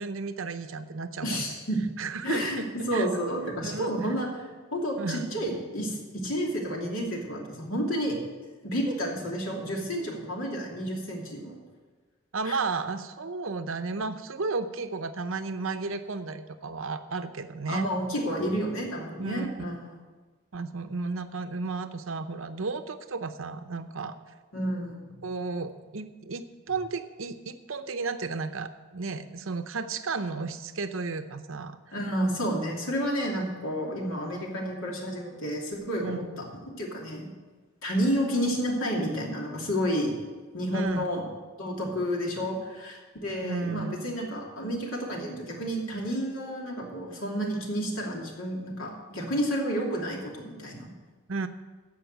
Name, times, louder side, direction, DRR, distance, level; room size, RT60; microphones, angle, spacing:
voice 1, 0.0-1.5 2.0-3.1 3.6-4.1 5.0-5.3 12.3-17.9 19.2-19.5 20.5-24.2 25.2-31.8 36.0-36.3 40.7-41.0 43.4-44.1 51.3-51.5, right 4 dB, 70° right, 9 dB, 0.7 m, -33 dB
voice 2, 1.2-1.8 2.2-8.2 8.6-11.6 12.4-12.6 17.7-19.8 24.5-25.2 31.9-36.2 36.8-37.3 37.8-40.1 40.5-41.2 41.6-50.9, equal, 80° left, -1 dB, 2.8 m, -30 dB
15.0 x 5.5 x 7.9 m, 1.3 s
head